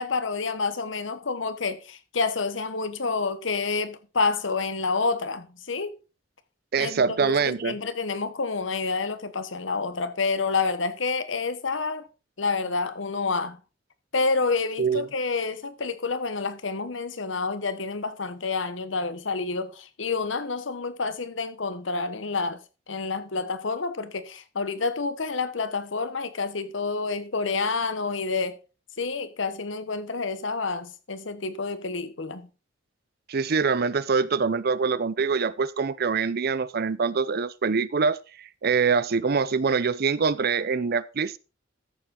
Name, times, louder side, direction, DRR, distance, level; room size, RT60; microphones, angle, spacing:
voice 1, 0.0-6.0 6.8-12.1 12.4-13.6 14.1-22.6 22.9-28.6 29.0-32.5, left 4 dB, 90° left, 1.2 m, -28 dB
voice 2, 6.7-7.7 14.8-15.1 33.3-41.4, right 5 dB, 55° right, 0.6 m, -24 dB
13.5 x 7.4 x 3.7 m
head